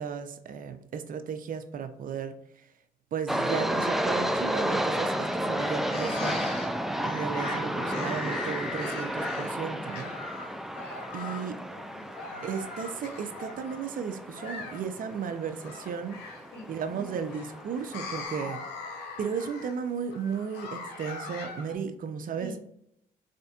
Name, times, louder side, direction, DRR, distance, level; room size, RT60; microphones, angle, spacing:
voice 1, 0.0-2.7 3.1-6.5 7.0-10.1 11.1-11.5 12.4-16.2 16.7-18.6 19.2-22.5, right 6 dB, 55° right, 8 dB, 0.5 m, -34 dB
sound 1, 3.3-18.2, equal, ahead, 0.3 m, -32 dB
sound 2, 5.6-21.7, left 4 dB, 85° left, 0.7 m, -41 dB
voice 2, 11.5-12.5 16.5-17.3 18.3-18.6 22.4-22.6, equal, 70° left, 1 dB, 1.2 m, -47 dB
4.2 x 2.6 x 2.3 m, 0.75 s
cardioid pair, 70°, 17 cm